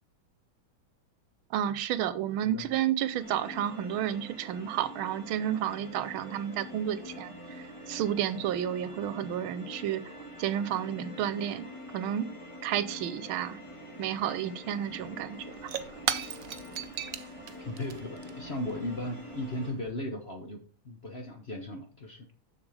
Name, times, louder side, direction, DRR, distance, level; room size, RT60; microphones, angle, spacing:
voice 1, 1.5-10.0 10.4-11.7 11.9-12.3 12.6-13.6 14.0-15.6, right 10 dB, 90° right, 14 dB, 1.5 m, -31 dB
voice 2, 2.4-2.8 17.6-22.3, left 1 dB, 45° left, 5 dB, 0.9 m, -37 dB
sound 1, 3.2-19.7, equal, 15° left, 1.8 m, -45 dB
Shatter / Crushing, 14.7-14.8 15.0-19.9, right 10 dB, 75° right, 0.7 m, -38 dB
7.3 x 6.7 x 4.8 m, 0.40 s
omnidirectional pair, 2.2 m